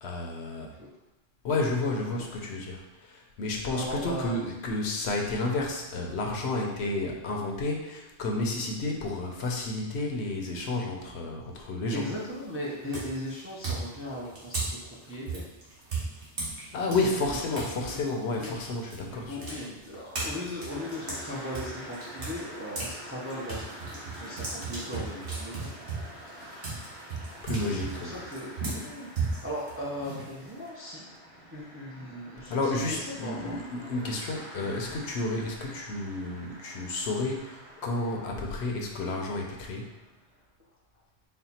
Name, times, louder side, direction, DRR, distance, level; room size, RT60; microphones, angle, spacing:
voice 1, 0.0-0.7 1.4-12.0 16.7-19.4 27.4-28.1 32.5-39.9, left 2 dB, 70° left, 0 dB, 0.9 m, -31 dB
voice 2, 3.7-4.4 11.9-15.4 17.0-17.1 17.5-18.0 18.4-18.6 19.1-23.6 23.9-25.7 27.5-31.1 31.5-33.6 34.6-34.9, left 1 dB, 15° right, -5 dB, 0.5 m, -38 dB
sound 1, 12.0-12.4 12.9-17.7 18.1-22.9 23.3-30.7, right 3 dB, 55° right, 1.2 m, -36 dB
sound 2, 20.7-40.2, right 1 dB, 30° right, 1.2 m, -47 dB
4.3 x 2.1 x 4.1 m, 1.0 s
omnidirectional pair, 1.2 m